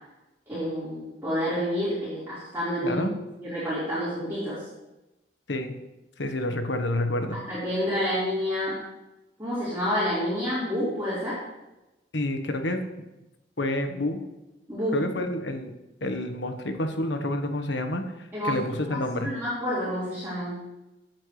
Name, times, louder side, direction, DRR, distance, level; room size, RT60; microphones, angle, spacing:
voice 1, 0.5-3.1 3.4-4.6 7.5-8.8 9.4-11.4 14.7-15.0 18.3-18.6 18.9-19.0 19.2-20.5, equal, 15° right, -13 dB, 4.4 m, -28 dB
voice 2, 2.8-3.1 5.5-5.7 6.2-7.4 12.1-12.8 13.6-14.2 14.9-15.7 16.0-19.3, left 1 dB, 90° left, 6 dB, 1.3 m, -29 dB
16.0 x 8.9 x 3.3 m, 0.98 s
head